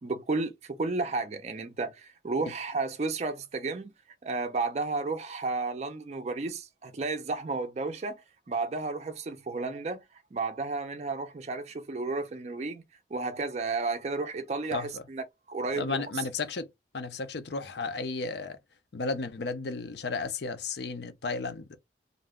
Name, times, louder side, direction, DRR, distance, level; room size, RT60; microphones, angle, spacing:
voice 1, 0.0-3.9 4.2-12.8 13.1-16.2, right 3 dB, 35° right, 0.4 m, -33 dB
voice 2, 14.7-15.0 15.7-16.7 16.9-18.6 18.9-21.8, left 4 dB, 70° left, 0.5 m, -33 dB
2.6 x 2.1 x 3.5 m
head